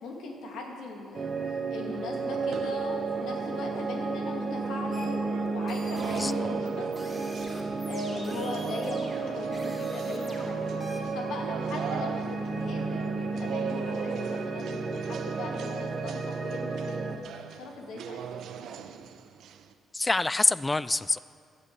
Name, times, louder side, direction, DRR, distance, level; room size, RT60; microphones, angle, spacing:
voice 1, 0.0-7.3 7.9-18.2, left 2 dB, 80° left, 1 dB, 2.3 m, -39 dB
sound 1, 1.1-17.2, right 4 dB, 35° right, 1.1 m, -32 dB
sound 2, 2.2-19.7, right 7 dB, 75° right, 0.7 m, -41 dB
sound 3, 4.9-11.0, right 1 dB, 5° right, 2.8 m, -45 dB
voice 2, 19.9-21.2, left 2 dB, 20° left, 18 dB, 0.3 m, -26 dB
14.0 x 6.9 x 8.5 m, 2.3 s
cardioid pair, 90°, 0 cm